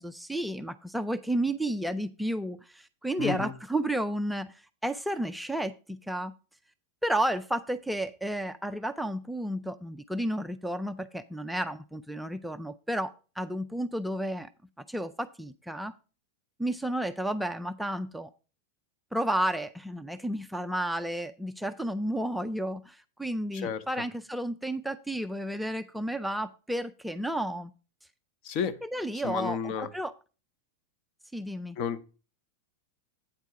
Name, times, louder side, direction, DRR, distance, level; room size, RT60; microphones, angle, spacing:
voice 1, 0.0-6.3 7.0-14.5 14.9-15.9 16.6-18.3 19.1-27.7 28.8-30.1 31.3-31.8, right 1 dB, ahead, 0.4 m, -32 dB
voice 2, 3.2-3.5 23.5-23.8 28.4-28.8 29.2-29.9 31.8-32.0, left 7 dB, 40° left, 0.8 m, -31 dB
8.7 x 4.5 x 6.0 m
figure-of-eight pair, 90°, 0 cm